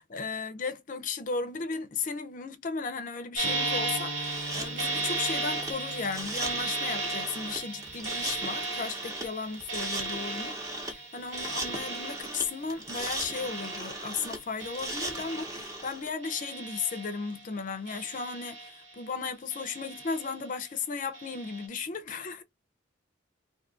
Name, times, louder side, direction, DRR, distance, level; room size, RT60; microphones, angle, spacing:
voice 1, 0.0-10.5 10.9-22.4, left 5 dB, 40° left, 0.4 m, -35 dB
sound 1, 3.4-15.9 16.2-17.4 17.9-19.1 19.5-20.6 21.1-21.7, right 3 dB, 65° right, 1.2 m, -36 dB
sound 2, 3.4-8.6, right 1 dB, 90° right, 0.5 m, -43 dB
sound 3, 4.2-16.1, right 1 dB, 15° right, 0.7 m, -38 dB
2.6 x 2.4 x 3.7 m
head